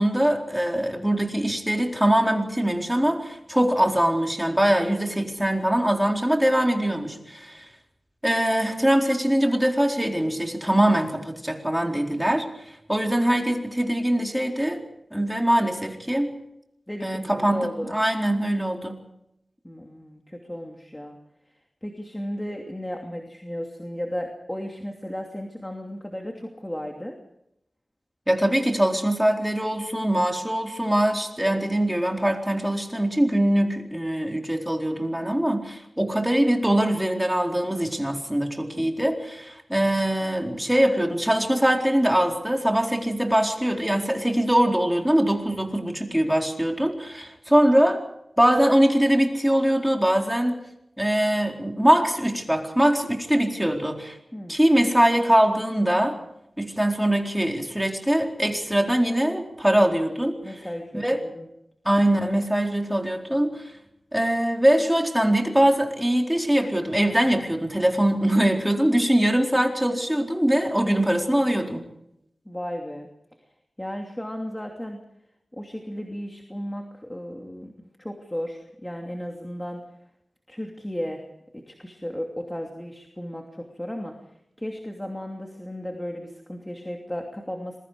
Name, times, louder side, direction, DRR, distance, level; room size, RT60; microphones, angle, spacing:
voice 1, 0.0-7.7 8.2-14.8 15.1-16.3 17.0-19.0 28.3-48.0 48.4-50.6 51.0-54.2 54.5-56.2 56.6-60.4 60.9-61.2 61.8-63.7 64.1-71.9, right 1 dB, 5° right, 2 dB, 4.1 m, -22 dB
voice 2, 16.9-17.9 19.6-21.2 21.8-27.2 54.3-54.6 60.4-61.5 72.4-73.1 73.8-75.0 75.5-77.7 78.0-79.8 80.5-81.3 81.5-87.8, equal, 15° left, 2 dB, 2.8 m, -34 dB
26.5 x 22.0 x 5.0 m, 0.80 s
wide cardioid pair, 55°, 0 cm